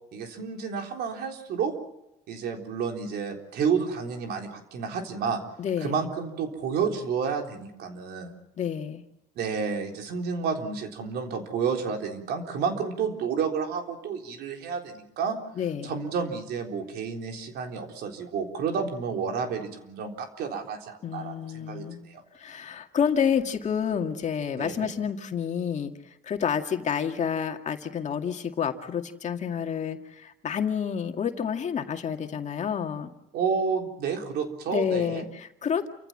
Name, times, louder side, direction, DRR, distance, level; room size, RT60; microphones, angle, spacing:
voice 1, 0.1-1.7 2.3-5.4 5.8-8.3 9.4-15.4 15.8-22.2 24.5-24.9 33.3-35.2, right 6 dB, 75° right, 3 dB, 3.9 m, -30 dB
voice 2, 5.6-6.1 8.6-9.0 15.6-15.9 21.0-22.0 22.3-33.1 34.7-35.9, left 7 dB, 45° left, 5 dB, 2.2 m, -29 dB
29.0 x 15.5 x 8.9 m, 0.88 s
cardioid pair, 110°, 17 cm